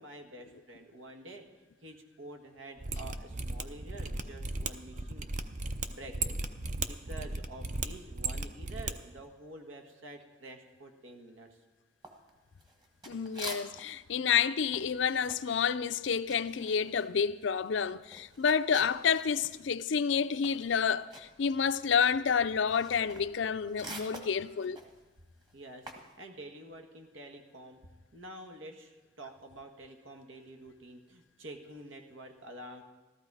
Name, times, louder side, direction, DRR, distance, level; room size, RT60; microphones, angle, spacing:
voice 1, 0.0-6.4 6.8-11.6 25.5-27.8 28.1-32.8, right 1 dB, 85° right, 1.7 m, -48 dB
Mechanisms, 2.8-8.9 9.2-9.3, right 3 dB, 40° right, 0.6 m, -36 dB
sound 1, 12.0-14.0 14.3-19.6 19.9-26.1, right 2 dB, 20° right, 1.5 m, -48 dB
voice 2, 13.1-24.8, left 6 dB, 70° left, 0.5 m, -29 dB
14.5 x 14.0 x 4.8 m
head